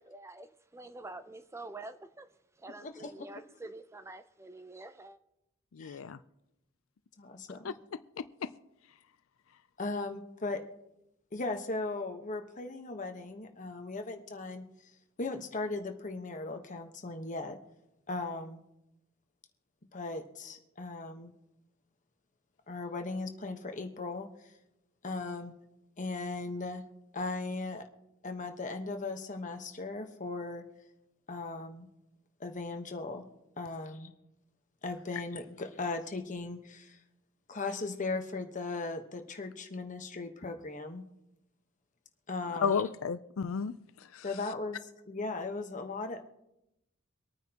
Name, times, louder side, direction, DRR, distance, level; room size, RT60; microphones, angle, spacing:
voice 1, 0.0-2.3 2.6-5.2, right 2 dB, 15° right, 0.4 m, -47 dB
voice 2, 2.8-3.1 5.8-6.0 7.2-7.7 9.8-10.6 11.3-14.9 15.2-17.6 18.1-18.6 19.9-21.3 22.7-24.3 25.0-25.5 26.0-26.8 27.1-27.8 28.2-30.6 31.3-31.9 32.4-33.2 33.6-34.1 34.8-37.0 37.5-41.0 42.3-42.8 44.2-46.2, left 3 dB, 40° left, 1.1 m, -38 dB
voice 3, 5.7-6.2 7.6-7.7 8.2-8.5 42.6-44.2, left 6 dB, 75° left, 0.4 m, -33 dB
25.0 x 9.3 x 2.9 m
head